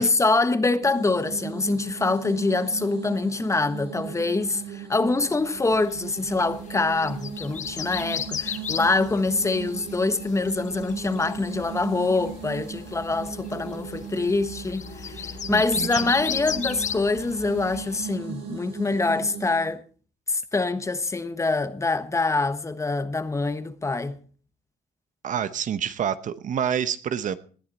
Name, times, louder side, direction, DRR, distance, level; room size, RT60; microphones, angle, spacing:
voice 1, 0.0-19.8 20.3-24.2, left 3 dB, 15° left, 1.3 m, -25 dB
sound 1, 0.8-19.7, right 7 dB, 90° right, 6.9 m, -38 dB
sound 2, 5.6-18.1, left 8 dB, 45° left, 1.3 m, -36 dB
voice 2, 15.5-16.1 25.2-27.3, right 8 dB, 50° right, 0.9 m, -28 dB
19.5 x 11.0 x 4.2 m
cardioid pair, 110°, 17 cm